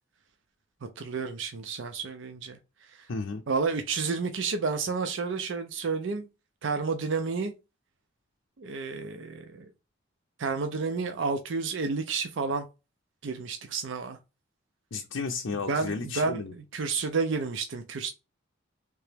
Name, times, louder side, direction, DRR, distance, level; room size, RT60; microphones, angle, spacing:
voice 1, 1.0-3.1 3.5-6.3 6.6-7.5 8.6-9.7 10.4-12.7 13.2-14.2 15.7-18.1, right 4 dB, 65° right, 0.5 m, -31 dB
voice 2, 3.1-3.4 14.9-16.5, left 4 dB, 70° left, 0.5 m, -33 dB
3.3 x 2.9 x 3.3 m
head